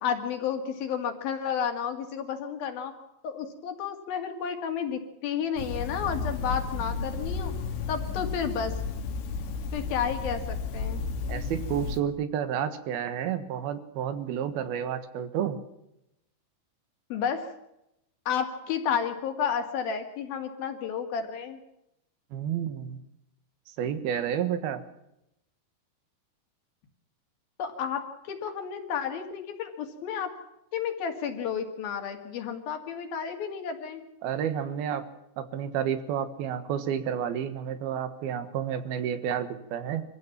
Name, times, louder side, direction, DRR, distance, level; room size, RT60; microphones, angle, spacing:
voice 1, 0.0-2.9 3.2-7.5 7.9-8.7 9.7-11.0 17.1-17.5 18.3-21.6 27.6-30.3 30.7-34.0, left 7 dB, 60° left, 6 dB, 3.7 m, -31 dB
sound 1, 5.6-12.0, left 4 dB, 75° left, 4.0 m, -33 dB
voice 2, 11.3-15.6 22.3-23.0 23.8-24.8 34.2-35.0 35.4-40.0, right 9 dB, 65° right, 12 dB, 3.1 m, -30 dB
25.0 x 16.0 x 7.4 m, 0.84 s
omnidirectional pair, 5.3 m